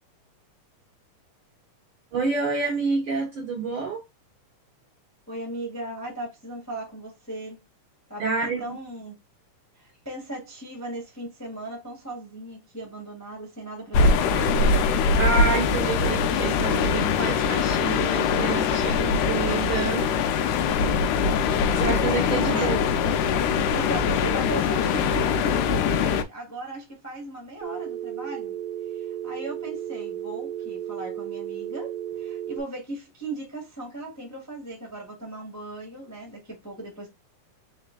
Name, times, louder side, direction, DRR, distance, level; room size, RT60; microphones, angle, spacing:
voice 1, 2.1-4.0 8.2-8.6 15.0-20.1 20.8-21.0 21.7-22.8, right 4 dB, 65° right, 1.4 m, -28 dB
voice 2, 5.3-7.6 8.1-9.1 9.8-14.5 22.4-22.7 23.7-28.6 28.9-37.1, right 1 dB, 20° left, 0.4 m, -37 dB
sound 1, 13.9-26.2, left 5 dB, 80° left, 1.9 m, -22 dB
Telephone, 27.6-32.6, right 11 dB, 85° right, 2.2 m, -34 dB
4.6 x 4.0 x 2.2 m
omnidirectional pair, 3.7 m